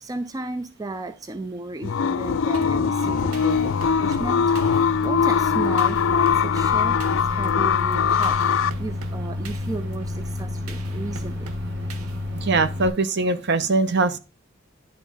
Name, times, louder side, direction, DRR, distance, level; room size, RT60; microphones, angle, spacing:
voice 1, 0.0-7.0 7.3-11.5, right 2 dB, 15° right, 0.4 m, -34 dB
sound 1, 1.8-8.7, left 7 dB, 65° left, 0.4 m, -21 dB
Microwave oven, 2.5-12.9, left 1 dB, 70° right, 1.7 m, -31 dB
sound 2, 3.0-12.7, right 4 dB, 85° right, 0.9 m, -44 dB
voice 2, 12.4-14.2, right 3 dB, 55° right, 0.7 m, -22 dB
10.5 x 3.6 x 5.5 m
head